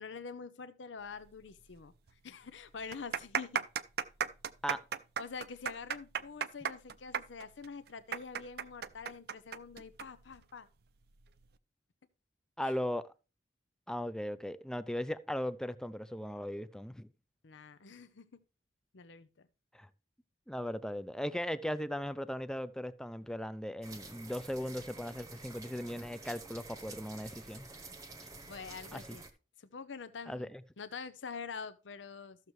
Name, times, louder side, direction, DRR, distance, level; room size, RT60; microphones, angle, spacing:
voice 1, 0.0-1.9 2.2-3.6 5.2-10.7 12.6-12.7 17.4-18.3 18.9-19.5 28.4-29.2 29.6-30.5 30.8-32.4, left 5 dB, 85° left, 0.7 m, -46 dB
sound 1, 1.7-1.8 2.1-2.2 2.8-10.1 10.3-10.4 11.2-11.5, right 7 dB, 55° right, 0.5 m, -35 dB
voice 2, 12.6-13.1 13.9-17.1 19.7-19.9 20.5-27.7 28.9-29.2 30.3-30.6, equal, 5° left, 0.4 m, -38 dB
sound 2, 23.8-29.3, right 3 dB, 20° right, 0.9 m, -49 dB
14.0 x 6.6 x 3.1 m
head